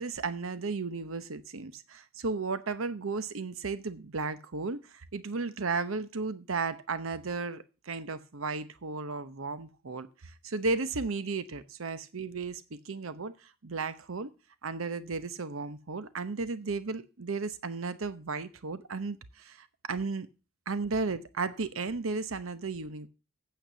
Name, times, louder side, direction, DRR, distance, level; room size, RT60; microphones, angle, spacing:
voice 1, 0.0-14.3 14.6-20.3 20.7-23.1, right 4 dB, 80° right, 0.9 m, -34 dB
9.1 x 7.3 x 7.0 m
head